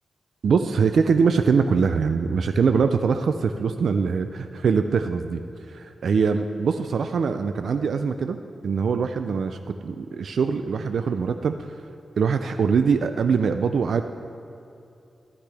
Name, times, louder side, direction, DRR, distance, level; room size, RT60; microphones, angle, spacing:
voice 1, 0.4-5.4 5.7-8.4 8.6-11.8 12.2-14.0, right 5 dB, 75° right, 7 dB, 0.4 m, -23 dB
15.0 x 12.0 x 3.4 m, 2.7 s
wide cardioid pair, 95°, 0 cm